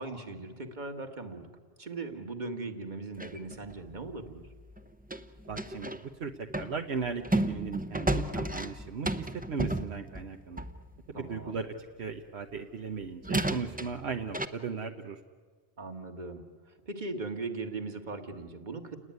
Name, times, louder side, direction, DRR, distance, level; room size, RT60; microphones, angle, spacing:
voice 1, 0.0-1.5 1.8-4.5 11.1-11.6 15.8-16.4 16.9-19.0, right 3 dB, 45° right, 6 dB, 2.0 m, -39 dB
sound 1, 3.2-6.0 6.5-10.9 12.6-12.7 13.2-14.5, right 1 dB, 10° right, 0.7 m, -33 dB
voice 2, 5.5-10.6 11.1-15.2, right 5 dB, 70° right, 4 dB, 1.3 m, -37 dB
29.5 x 19.5 x 9.5 m, 1.5 s
omnidirectional pair, 1.1 m